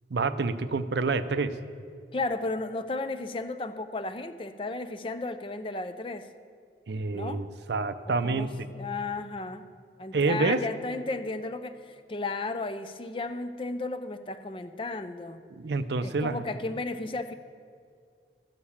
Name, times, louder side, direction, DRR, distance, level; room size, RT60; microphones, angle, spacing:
voice 1, 0.1-1.5 6.9-8.5 10.1-10.6 15.6-16.4, right 3 dB, 75° right, 12 dB, 0.5 m, -27 dB
voice 2, 2.1-6.3 7.1-7.4 8.1-9.7 10.0-15.4 16.0-17.3, left 3 dB, 30° left, 10 dB, 0.5 m, -34 dB
14.0 x 6.6 x 7.1 m, 2.2 s
head